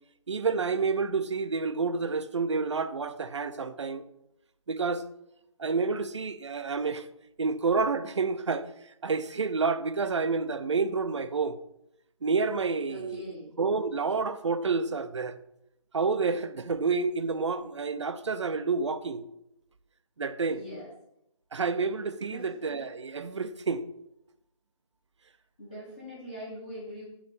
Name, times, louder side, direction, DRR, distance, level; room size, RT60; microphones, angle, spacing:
voice 1, 0.3-4.0 4.7-5.0 5.6-7.1 7.4-8.7 9.0-11.6 12.2-13.2 13.6-15.4 15.9-19.3 20.2-20.6 21.5-23.8, right 4 dB, 55° right, 0.6 m, -29 dB
voice 2, 12.9-13.5 20.5-20.9 22.3-22.5 25.6-27.0, equal, 15° left, 1.1 m, -42 dB
9.5 x 3.3 x 6.8 m
hypercardioid pair, 175°, 18 cm